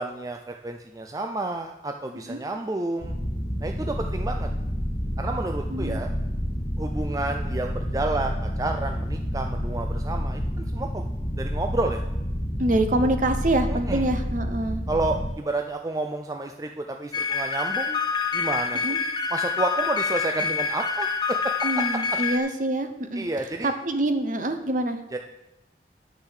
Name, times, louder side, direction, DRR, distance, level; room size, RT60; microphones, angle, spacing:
voice 1, 0.0-3.1 3.6-4.5 5.2-6.1 6.8-11.0 11.4-12.0 13.7-14.1 14.9-18.0 18.3-18.8 19.3-21.7 23.2-23.7 25.1-25.2, right 2 dB, 20° right, 4 dB, 0.4 m, -30 dB
sound 1, 3.0-15.3, equal, 40° left, 1.6 m, -29 dB
voice 2, 5.7-6.0 12.6-14.8 18.8-19.0 21.6-23.2 23.6-25.0, right 1 dB, 45° right, 8 dB, 0.9 m, -25 dB
sound 2, 17.1-22.4, left 5 dB, 25° left, 0.9 m, -26 dB
9.9 x 6.6 x 6.5 m, 0.94 s
head